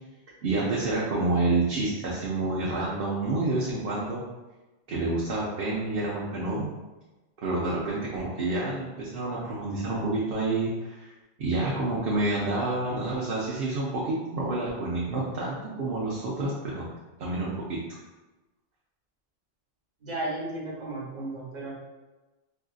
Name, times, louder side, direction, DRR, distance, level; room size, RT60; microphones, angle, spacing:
voice 1, 0.4-4.2 4.9-6.7 7.4-11.1 11.4-16.8 17.2-18.0, right 2 dB, 55° right, -6 dB, 0.8 m, -28 dB
voice 2, 20.0-21.7, right 2 dB, 35° right, -7 dB, 1.2 m, -34 dB
4.5 x 2.5 x 2.4 m, 1.1 s
omnidirectional pair, 1.2 m